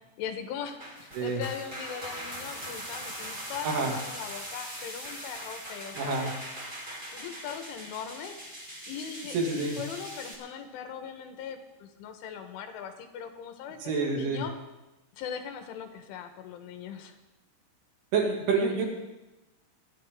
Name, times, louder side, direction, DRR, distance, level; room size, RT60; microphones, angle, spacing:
voice 1, 0.2-6.4 7.1-8.4 8.9-14.5 15.2-17.2, left 8 dB, 80° left, 6 dB, 3.6 m, -40 dB
sound 1, 0.6-10.3, equal, 20° right, 1.4 m, -41 dB
voice 2, 6.0-6.3 9.3-9.8 13.8-14.4 18.1-18.9, right 4 dB, 75° right, 0 dB, 4.7 m, -28 dB
25.5 x 11.0 x 3.7 m, 1.0 s
omnidirectional pair, 5.7 m